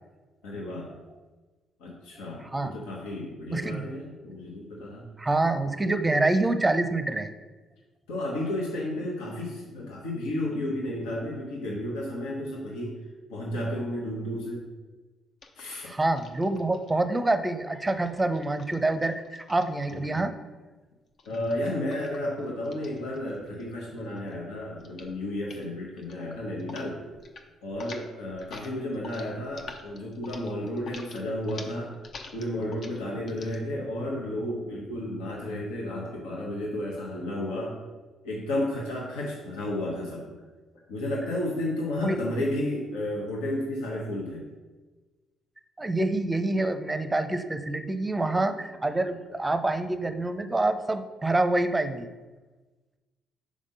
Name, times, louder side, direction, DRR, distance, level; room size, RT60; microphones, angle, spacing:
voice 1, 0.4-0.9 1.8-5.1 8.1-12.9 13.3-14.6 15.6-15.9 19.9-20.2 21.3-27.0 27.6-31.9 32.3-37.8 38.2-40.3 40.9-44.4, left 1 dB, 85° left, -4 dB, 1.0 m, -32 dB
voice 2, 3.5-3.8 5.2-7.3 15.9-20.3 42.0-42.2 45.8-52.1, right 2 dB, 20° right, 9 dB, 0.6 m, -26 dB
sound 1, 15.4-16.9 17.7-20.3 21.2-23.7 24.0-24.4 24.8-25.1 25.4-25.7 26.0-26.9 27.1-27.4 27.7-33.6, left 3 dB, 60° left, 0.7 m, -47 dB
5.0 x 3.6 x 5.5 m, 1.3 s
supercardioid pair, 60°, 0 cm